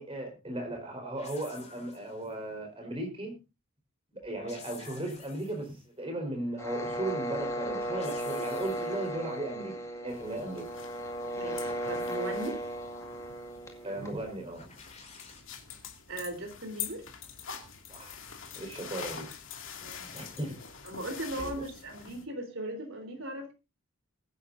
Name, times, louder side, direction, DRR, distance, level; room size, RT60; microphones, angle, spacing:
voice 1, 0.0-3.3 4.1-9.7 10.0-10.7 13.8-14.7 17.9-18.2 18.5-19.3 20.1-20.6 21.4-21.6, right 1 dB, 25° right, 3 dB, 4.5 m, -36 dB
sound 1, 1.2-2.4 4.2-5.8 7.6-9.2 11.1-12.7 14.5-15.4, left 5 dB, 30° left, 4.6 m, -52 dB
sound 2, 6.6-14.3, right 1 dB, 15° left, 2.0 m, -36 dB
sound 3, 10.1-22.2, left 7 dB, 60° left, 2.5 m, -45 dB
voice 2, 11.3-12.6 16.1-17.0 19.8-20.1 20.8-23.5, right 1 dB, 60° right, 6 dB, 3.9 m, -38 dB
21.5 x 10.0 x 2.7 m, 0.27 s
head